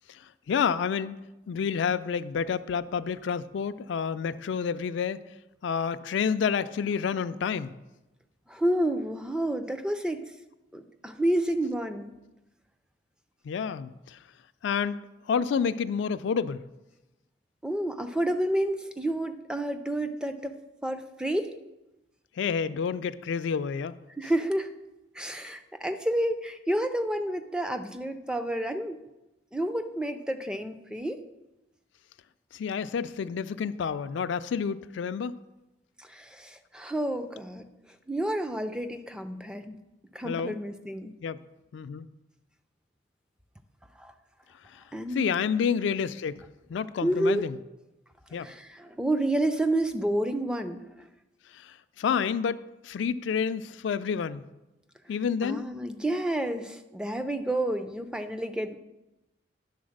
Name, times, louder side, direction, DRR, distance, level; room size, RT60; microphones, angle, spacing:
voice 1, 0.1-1.2 1.5-5.2 5.6-7.7 13.4-14.2 14.6-15.0 15.3-16.6 22.4-23.9 32.5-35.4 40.2-40.6 41.2-41.4 41.7-42.1 44.7-44.8 45.1-46.4 46.7-47.6 48.3-48.5 51.5-54.4 55.1-55.6, left 6 dB, 70° left, 13 dB, 0.3 m, -29 dB
voice 2, 8.5-10.2 10.7-12.1 17.6-20.6 20.8-21.6 24.1-24.7 25.1-29.0 29.5-31.2 36.0-37.7 38.1-39.8 40.1-41.1 44.0-44.1 44.9-45.3 47.0-47.5 48.3-51.1 55.4-58.8, right 1 dB, 5° right, 8 dB, 0.3 m, -30 dB
10.5 x 3.9 x 6.4 m, 1.0 s
head